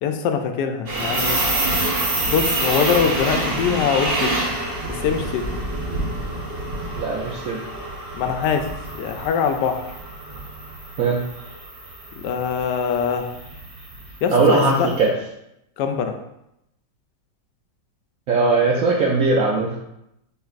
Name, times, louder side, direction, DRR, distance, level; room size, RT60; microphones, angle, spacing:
voice 1, 0.0-1.4 2.3-4.4 4.9-5.6 8.1-9.8 12.2-13.3 14.2-14.9 15.8-16.2, left 7 dB, 75° left, 6 dB, 1.1 m, -23 dB
sound 1, 0.9-14.9, right 2 dB, 40° right, 1.0 m, -27 dB
voice 2, 7.0-7.6 11.0-11.2 14.3-15.1 18.3-19.8, right 3 dB, 70° right, -2 dB, 0.8 m, -19 dB
6.8 x 3.2 x 2.4 m, 0.83 s
omnidirectional pair, 2.0 m